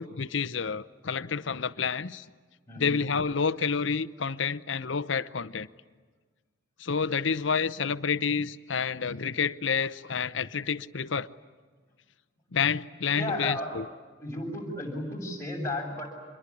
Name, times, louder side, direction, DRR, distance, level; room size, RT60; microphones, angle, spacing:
voice 1, 0.0-2.2 2.8-5.7 6.8-11.3 12.5-13.8, left 6 dB, 70° left, 0.8 m, -29 dB
voice 2, 2.7-3.0 13.1-13.7 14.2-16.1, left 1 dB, 15° left, 7.2 m, -33 dB
26.5 x 22.5 x 9.8 m
head